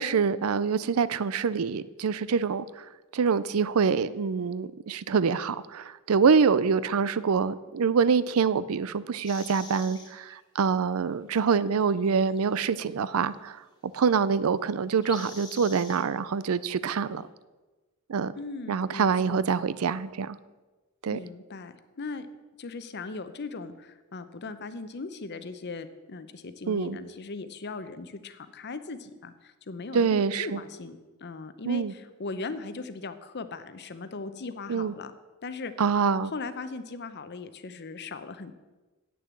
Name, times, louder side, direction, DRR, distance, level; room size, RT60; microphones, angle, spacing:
voice 1, 0.0-2.9 3.1-13.6 13.9-17.2 18.1-18.3 18.7-20.4 21.0-21.2 26.7-27.0 29.9-30.6 31.7-31.9 34.7-34.9 35.8-36.3, right 6 dB, 85° right, 17 dB, 0.5 m, -25 dB
sound 1, 9.2-10.3 11.9-13.3 15.0-16.0, left 3 dB, 20° left, 1.7 m, -45 dB
voice 2, 18.4-19.4 21.1-22.3 22.6-35.1 35.4-35.7 36.3-38.5, left 3 dB, 55° left, 11 dB, 0.7 m, -39 dB
8.6 x 6.8 x 7.5 m, 1.2 s
head